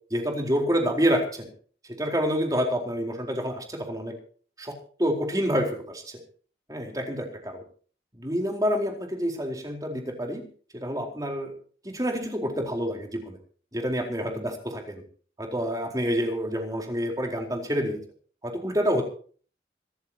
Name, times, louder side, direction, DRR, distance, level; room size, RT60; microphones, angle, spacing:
voice 1, 0.1-1.5 1.9-4.2 4.6-6.2 6.7-7.6 8.2-10.4 10.8-11.5 11.8-13.4 13.7-15.0 15.4-18.0 18.4-19.0, equal, 20° right, 2 dB, 4.3 m, -28 dB
26.0 x 14.5 x 2.9 m, 0.43 s
head